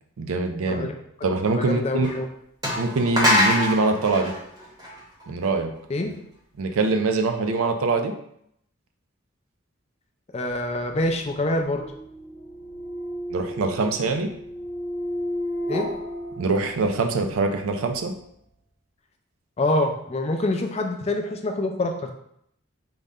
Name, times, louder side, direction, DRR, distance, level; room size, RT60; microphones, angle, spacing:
voice 1, 0.2-0.9 1.2-2.1 2.8-4.3 5.3-5.7 6.6-8.1 13.3-14.3 16.4-18.1, right 3 dB, 85° right, 6 dB, 0.4 m, -23 dB
voice 2, 1.5-2.3 5.9-6.1 10.3-11.8 15.7-15.9 19.6-22.1, left 2 dB, 30° left, 3 dB, 0.3 m, -25 dB
sound 1, 2.0-2.1 2.6-5.4, left 1 dB, 20° right, 0.8 m, -23 dB
sound 2, 10.8-17.3, equal, 65° left, 0.8 m, -33 dB
3.8 x 2.1 x 3.6 m, 0.74 s
head